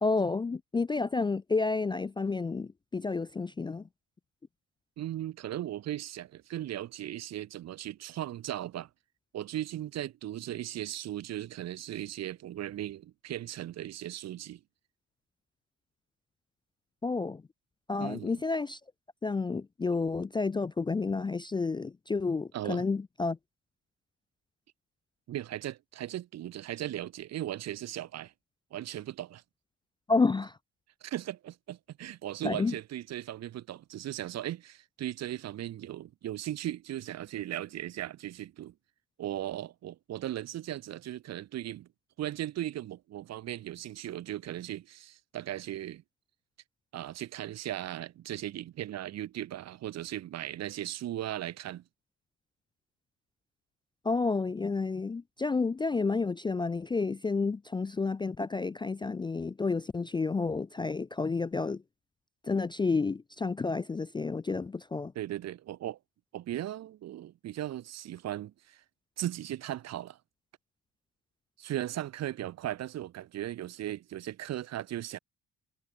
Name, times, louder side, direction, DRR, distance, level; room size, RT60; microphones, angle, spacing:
voice 1, 0.0-3.9 17.0-17.4 17.9-18.8 19.2-23.4 30.1-30.6 32.4-32.7 54.0-61.8 62.4-65.1, left 4 dB, 15° left, 0.3 m, -30 dB
voice 2, 5.0-8.9 9.3-14.6 18.0-18.4 22.5-22.9 25.3-28.3 28.7-29.4 31.0-38.7 39.2-41.9 42.2-46.0 46.9-51.8 65.1-66.0 66.3-68.8 69.2-70.2 71.6-75.2, right 13 dB, 55° right, 0.8 m, -37 dB
cardioid pair, 140°, 31 cm